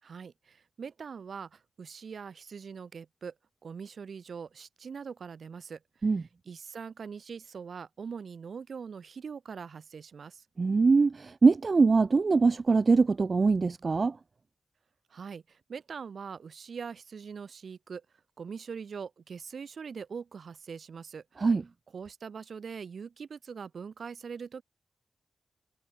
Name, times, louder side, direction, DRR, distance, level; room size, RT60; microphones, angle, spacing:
voice 1, 0.0-3.3 3.6-5.8 6.1-10.4 15.1-18.0 18.4-21.4 21.9-24.6, right 6 dB, 70° right, 3.2 m, -42 dB
voice 2, 10.6-14.1 21.4-21.6, right 4 dB, 40° right, 0.5 m, -23 dB
wide cardioid pair, 115°, 0 cm